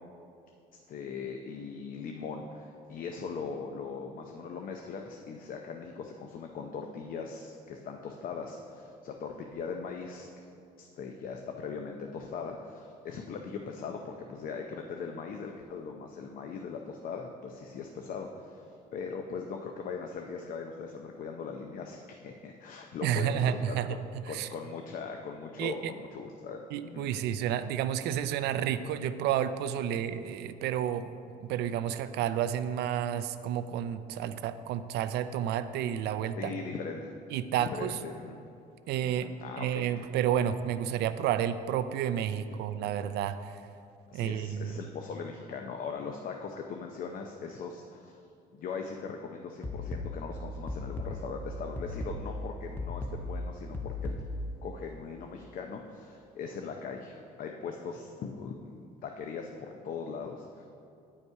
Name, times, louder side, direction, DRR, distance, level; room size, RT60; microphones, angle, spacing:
voice 1, 0.7-10.4 10.8-23.7 24.3-27.1 36.4-37.1 37.6-38.4 39.0-39.8 44.1-48.2 48.5-54.2 54.6-58.8 59.0-60.7, left 5 dB, 55° left, 3 dB, 0.6 m, -40 dB
voice 2, 23.0-23.9 24.3-24.5 25.6-25.8 26.7-31.1 31.4-36.5 37.3-38.0 38.9-39.3 39.6-43.6 44.1-44.8, right 10 dB, 80° right, 12 dB, 0.4 m, -31 dB
sound 1, 49.6-54.6, left 2 dB, 10° left, 0.7 m, -37 dB
9.6 x 5.4 x 4.6 m, 2.5 s
cardioid pair, 110°, 17 cm